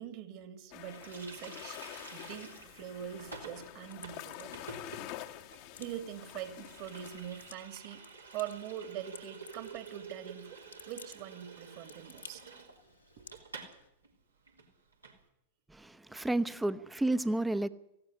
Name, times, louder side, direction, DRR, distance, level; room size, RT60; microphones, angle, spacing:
voice 1, 0.0-1.8 2.1-4.5 5.8-8.0 8.3-12.4 13.2-13.3 16.1-16.3, right 10 dB, 45° right, 9 dB, 2.7 m, -43 dB
sound 1, 0.7-7.5, left 14 dB, 45° left, 1.3 m, -47 dB
Water tap faucet, 0.9-13.8 14.0-14.2 14.5-15.2, right 4 dB, 80° right, 3.6 m, -50 dB
sound 2, 3.2-13.9, left 5 dB, 75° left, 1.9 m, -57 dB
voice 2, 15.7-17.7, right 2 dB, 5° right, 13 dB, 1.0 m, -31 dB
18.5 x 16.0 x 9.9 m, 0.80 s
figure-of-eight pair, 90°, 0 cm